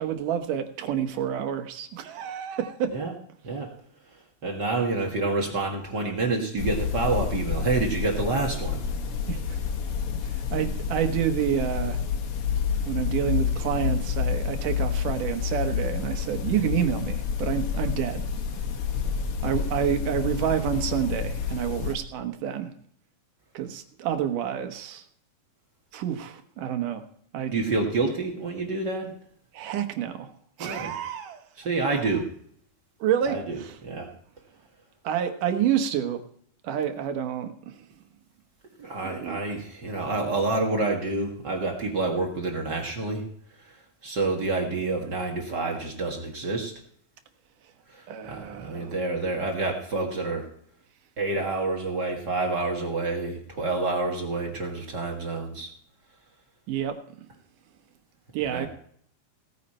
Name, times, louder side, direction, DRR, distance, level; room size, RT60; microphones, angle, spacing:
voice 1, 0.0-2.9 9.3-9.6 10.3-12.0 12.9-18.2 19.4-22.7 23.5-25.0 25.9-27.0 27.3-27.5 29.5-30.3 30.6-31.4 31.9-32.0 33.0-33.8 35.0-36.2 36.6-37.9 39.0-39.4 48.1-48.9 56.7-57.0 58.3-58.7, right 9 dB, 85° right, 7 dB, 2.8 m, -28 dB
voice 2, 4.4-8.8 27.5-29.1 30.6-30.9 31.6-32.3 33.2-34.1 38.8-43.3 43.6-46.7 47.9-50.5 51.2-55.7 58.4-58.7, right 3 dB, 40° right, 1 dB, 1.8 m, -28 dB
sound 1, 6.6-21.9, left 7 dB, 55° left, 1.8 m, -29 dB
17.0 x 9.6 x 4.3 m, 0.63 s
omnidirectional pair, 3.6 m